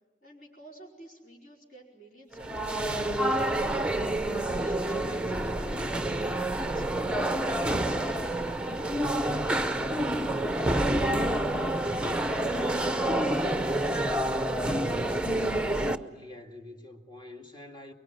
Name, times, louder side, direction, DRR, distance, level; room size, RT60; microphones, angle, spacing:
voice 1, 0.2-6.0, right 1 dB, 50° left, 4.9 m, -52 dB
sound 1, 2.3-16.0, right 1 dB, 5° right, 0.7 m, -28 dB
voice 2, 15.3-17.9, left 2 dB, 25° left, 2.3 m, -46 dB
23.5 x 23.0 x 9.3 m
head